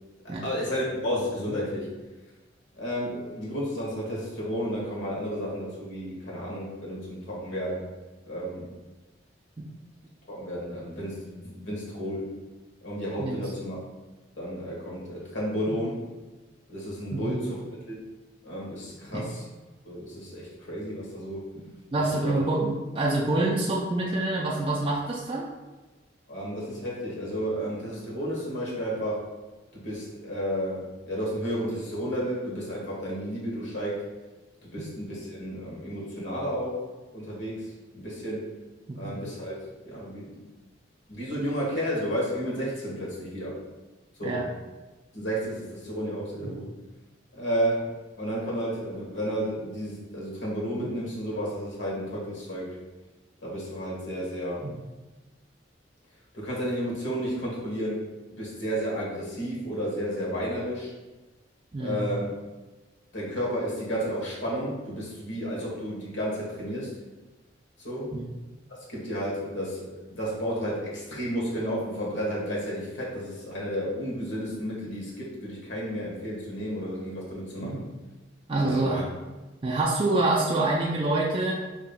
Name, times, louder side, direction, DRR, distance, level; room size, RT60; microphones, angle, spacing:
voice 1, 0.2-1.9 2.7-7.9 8.3-8.7 10.3-12.3 12.8-13.8 14.4-16.1 16.7-17.6 17.9-18.0 18.4-19.5 19.8-21.4 22.0-22.4 26.3-29.3 29.7-34.0 34.6-36.9 37.1-38.5 38.9-39.6 39.8-40.4 41.1-43.6 44.2-44.4 45.1-46.7 47.3-52.8 53.4-54.7 56.3-58.1 58.4-60.9 61.8-62.3 63.1-66.9 67.8-68.2 68.8-77.9 78.5-79.0, equal, 75° left, -4 dB, 1.2 m, -32 dB
voice 2, 21.9-25.5 38.9-39.1 44.2-44.5 54.6-54.7 61.7-62.1 68.1-68.3 77.6-77.8 78.5-79.0 79.6-81.5, right 2 dB, 25° right, -3 dB, 0.3 m, -26 dB
5.2 x 2.9 x 2.3 m, 1.2 s
head